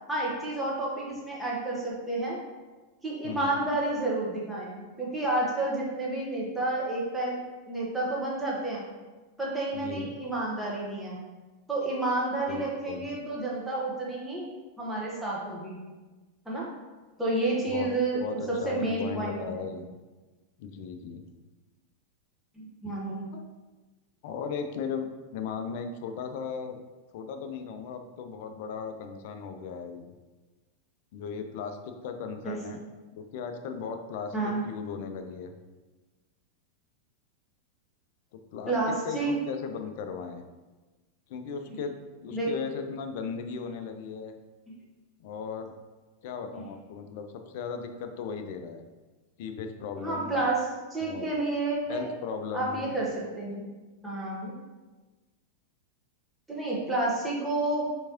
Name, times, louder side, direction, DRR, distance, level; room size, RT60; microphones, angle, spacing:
voice 1, 0.1-2.4 3.0-7.4 7.7-8.8 9.4-11.2 11.7-14.5 14.8-15.8 16.4-16.7 17.2-19.7 22.6-23.2 32.4-32.6 34.3-34.6 38.7-39.4 42.3-42.5 44.7-44.8 46.5-46.7 50.0-52.1 52.5-53.6 54.0-54.5 56.5-57.9, right 2 dB, 5° right, -5 dB, 1.2 m, -30 dB
voice 2, 3.2-3.6 9.7-10.1 12.5-13.0 17.7-17.9 18.2-19.9 20.6-21.2 22.8-22.9 23.3-23.4 24.2-26.8 27.1-30.1 31.1-32.9 33.1-35.5 38.5-38.7 39.0-40.4 41.3-41.9 42.2-44.3 45.2-45.7 46.2-48.8 49.4-50.4 51.0-51.3 51.9-52.9, left 6 dB, 50° left, 7 dB, 0.4 m, -37 dB
4.5 x 3.4 x 2.9 m, 1.2 s
figure-of-eight pair, 90°, 0 cm